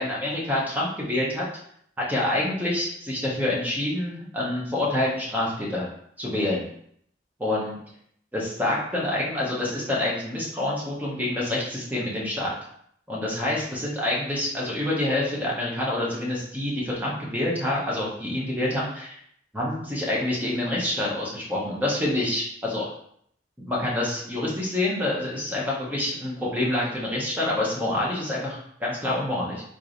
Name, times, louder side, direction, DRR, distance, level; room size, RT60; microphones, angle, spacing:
voice 1, 0.0-1.4 2.1-5.9 6.2-6.7 7.4-7.8 8.3-12.5 13.1-19.2 19.5-22.9 23.6-29.6, left 1 dB, 10° right, -5 dB, 1.2 m, -27 dB
3.7 x 3.4 x 3.9 m, 0.67 s
head